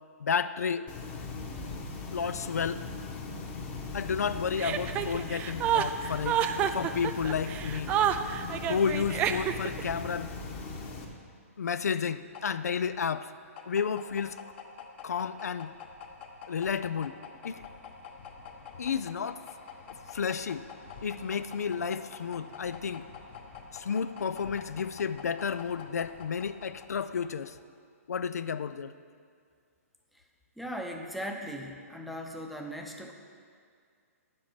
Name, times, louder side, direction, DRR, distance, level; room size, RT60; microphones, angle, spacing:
voice 1, 0.2-0.9 2.1-2.8 3.9-6.4 6.7-7.9 8.7-10.3 11.6-13.3 13.7-14.4 15.0-15.7 16.5-17.2 17.4-17.6 18.8-19.4 20.1-20.7 21.0-23.1 23.7-27.6 28.1-28.9, left 6 dB, 85° left, 13 dB, 0.5 m, -31 dB
sound 1, 0.9-11.0, left 3 dB, 20° left, 1.1 m, -39 dB
Chuckle chortle, 4.6-9.8, right 10 dB, 15° right, 0.3 m, -29 dB
sound 2, 11.6-27.6, left 5 dB, 45° left, 1.1 m, -47 dB
voice 2, 30.6-33.1, equal, ahead, 1 dB, 0.7 m, -38 dB
9.7 x 7.5 x 6.0 m, 2.2 s
hypercardioid pair, 150°, 8 cm